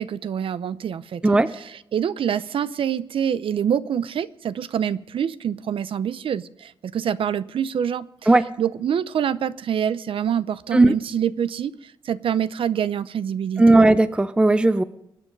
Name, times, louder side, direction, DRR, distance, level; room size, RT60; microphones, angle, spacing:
voice 1, 0.0-1.4 1.9-8.1 8.6-13.8, right 8 dB, 85° right, 15 dB, 0.6 m, -26 dB
voice 2, 13.6-14.8, right 2 dB, 10° right, 13 dB, 0.5 m, -16 dB
24.0 x 9.9 x 5.3 m, 0.80 s
wide cardioid pair, 155°, 9 cm